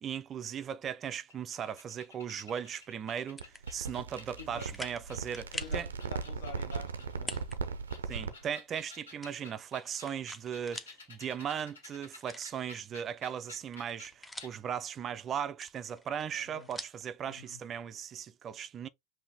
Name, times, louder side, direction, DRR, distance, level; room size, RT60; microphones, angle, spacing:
voice 1, 0.0-5.9 8.1-18.9, right 8 dB, 35° right, 0.5 m, -38 dB
sound 1, 1.3-5.6 6.0-7.4 7.8-14.1 14.4-14.5, left 3 dB, 80° left, 1.6 m, -53 dB
sound 2, 3.1-3.6 4.2-4.3 4.7-5.0 5.3-5.8 7.1-7.6 7.9-8.0 9.2-11.0 11.3-11.4 12.2-13.1 13.5-14.7 15.5-17.0, left 1 dB, 10° left, 0.7 m, -45 dB
sound 3, 3.4-8.5, right 5 dB, 80° right, 0.5 m, -38 dB
voice 2, 4.4-4.7 5.5-7.4 16.3-16.7 17.3-17.6, left 6 dB, 65° left, 1.2 m, -48 dB
5.5 x 2.6 x 3.5 m
hypercardioid pair, 85°, 0 cm